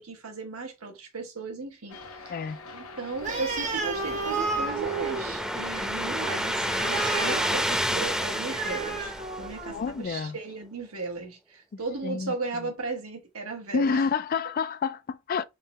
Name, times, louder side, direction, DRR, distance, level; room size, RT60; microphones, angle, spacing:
voice 1, 0.0-2.0 2.2-2.4 2.7-9.1 9.4-14.1, right 3 dB, 85° right, 1.2 m, -36 dB
sound 1, 1.9-6.9, left 2 dB, 80° left, 0.8 m, -44 dB
voice 2, 2.3-2.6 9.7-10.4 12.0-12.7 13.7-15.4, left 5 dB, 45° left, 0.3 m, -29 dB
Animal, 3.2-9.9, right 4 dB, 35° right, 0.8 m, -33 dB
sound 2, 3.4-9.9, equal, 5° right, 0.7 m, -30 dB
3.7 x 3.2 x 2.9 m
head